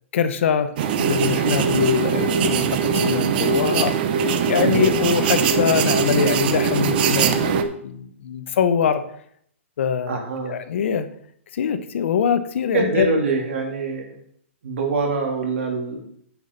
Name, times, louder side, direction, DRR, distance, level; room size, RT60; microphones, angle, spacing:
voice 1, 0.1-4.0 4.5-9.1 9.8-11.1 11.5-13.1, left 7 dB, 65° left, 11 dB, 0.9 m, -23 dB
sound 1, 0.8-7.6, right 6 dB, 45° right, 0.9 m, -21 dB
voice 2, 4.6-5.0 10.1-10.6 12.7-14.2 14.6-16.0, right 3 dB, 65° right, 1 dB, 3.0 m, -24 dB
9.3 x 5.9 x 5.3 m, 0.66 s
hypercardioid pair, 150°, 7 cm